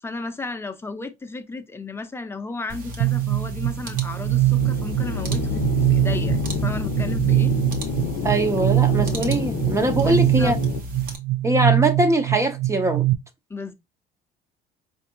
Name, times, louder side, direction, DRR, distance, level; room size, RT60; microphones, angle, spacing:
voice 1, 0.0-7.6 10.0-10.5 13.5-13.7, left 3 dB, 15° left, 0.7 m, -34 dB
sound 1, 2.7-11.2, equal, 55° right, 1.1 m, -36 dB
sound 2, 3.0-13.1, right 14 dB, 75° right, 0.6 m, -23 dB
sound 3, 4.6-10.8, left 8 dB, 85° left, 0.5 m, -29 dB
voice 2, 8.2-10.6 11.4-13.1, right 1 dB, 15° right, 0.7 m, -22 dB
4.4 x 2.6 x 2.8 m
cardioid pair, 110°, 17 cm